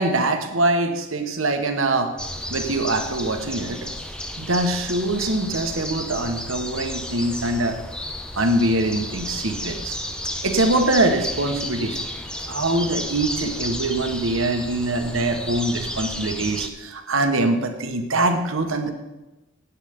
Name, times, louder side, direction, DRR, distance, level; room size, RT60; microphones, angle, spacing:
voice 1, 0.0-2.1 2.5-3.9 4.4-7.8 8.4-10.0 10.4-12.0 12.5-18.9, right 2 dB, 75° right, 6 dB, 1.2 m, -23 dB
sound 1, 2.2-16.7, left 1 dB, 5° left, 0.7 m, -32 dB
15.5 x 9.2 x 3.6 m, 1.0 s
head